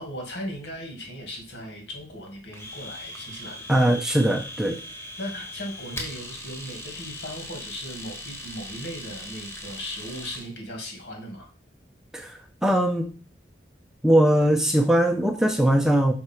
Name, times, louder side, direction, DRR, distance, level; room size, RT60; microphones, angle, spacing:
voice 1, 0.0-3.8 4.7-11.5, equal, 75° left, 1 dB, 2.4 m, -38 dB
Domestic sounds home sounds, 2.5-10.5, left 1 dB, 15° left, 1.4 m, -39 dB
voice 2, 3.7-4.7 12.1-13.1 14.0-16.1, right 1 dB, 5° right, 4 dB, 0.6 m, -21 dB
5.9 x 4.8 x 4.5 m, 0.36 s
head